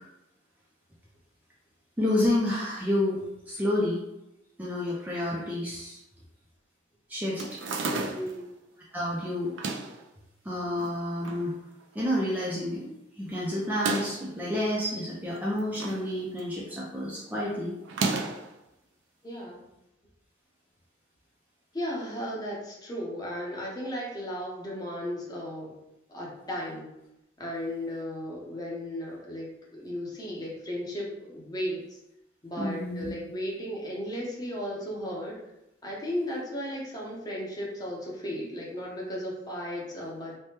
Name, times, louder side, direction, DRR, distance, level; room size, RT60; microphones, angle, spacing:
voice 1, 2.0-4.0 4.6-6.0 7.1-7.5 8.9-9.5 10.4-11.6 11.9-17.7 32.6-33.1, left 1 dB, 10° right, -6 dB, 0.4 m, -29 dB
sound 1, 7.4-8.4 9.4-10.0 10.8-11.4 11.8-11.9 12.1-12.2 13.6-14.3 15.3-16.1 16.4-16.7 17.8-18.5, right 3 dB, 80° right, 0.4 m, -32 dB
voice 2, 7.9-8.5 19.2-19.6 21.7-25.7 26.1-26.9 27.4-32.0 32.4-35.3 35.8-40.3, equal, 20° left, -4 dB, 0.7 m, -35 dB
3.3 x 2.1 x 2.8 m, 0.87 s
head